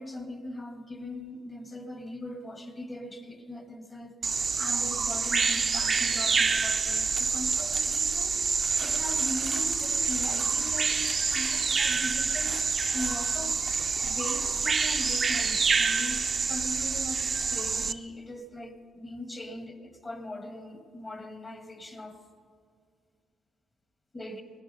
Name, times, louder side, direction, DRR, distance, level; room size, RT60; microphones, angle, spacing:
voice 1, 0.0-12.6 12.9-22.2 24.1-24.4, left 1 dB, 25° left, 7 dB, 1.6 m, -40 dB
Bird vocalization bird call bird song, 4.2-17.9, right 5 dB, 35° right, 0.6 m, -27 dB
18.5 x 11.0 x 5.4 m, 2.2 s
cardioid pair, 90°, 0 cm